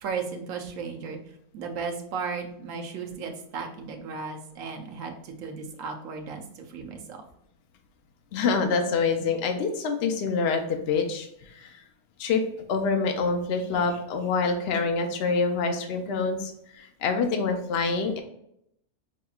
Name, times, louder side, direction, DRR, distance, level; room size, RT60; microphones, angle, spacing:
voice 1, 0.0-1.2 1.5-7.2, right 5 dB, 70° right, 3 dB, 0.9 m, -35 dB
voice 2, 8.3-11.8 12.2-12.4 12.7-18.2, left 4 dB, 70° left, 4 dB, 0.6 m, -26 dB
4.9 x 2.9 x 2.3 m, 0.75 s
omnidirectional pair, 1.6 m